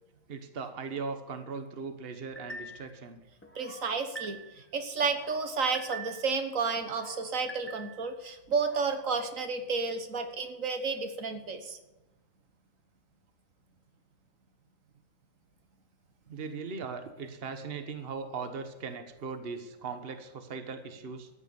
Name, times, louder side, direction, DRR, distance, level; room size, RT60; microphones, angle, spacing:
voice 1, 0.3-3.2 16.3-21.3, right 5 dB, 50° right, 8 dB, 1.3 m, -39 dB
sound 1, 2.4-2.9 3.4-4.7 5.0-6.4 6.8-8.1 8.5-9.0, right 2 dB, 10° left, 1.5 m, -45 dB
voice 2, 3.5-11.8, right 4 dB, 75° right, 7 dB, 1.6 m, -31 dB
13.5 x 8.9 x 7.1 m, 1.0 s
omnidirectional pair, 1.4 m